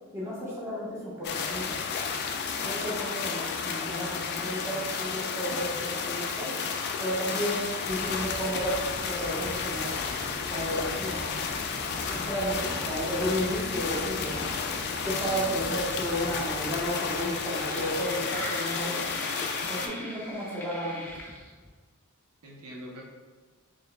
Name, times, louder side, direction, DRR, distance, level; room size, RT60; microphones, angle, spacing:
voice 1, 0.1-1.7 2.6-6.5 7.0-8.8 9.0-9.9 10.5-11.2 12.1-14.5 15.0-19.0 19.7-21.0, equal, 10° right, -8 dB, 1.1 m, -32 dB
sound 1, 1.2-19.9, left 5 dB, 50° left, 0.4 m, -32 dB
sound 2, 7.8-21.7, left 1 dB, 10° left, 0.6 m, -42 dB
voice 2, 12.3-12.9 15.2-15.5 22.4-23.0, equal, 85° right, -3 dB, 0.8 m, -44 dB
4.5 x 3.2 x 2.3 m, 1.4 s
head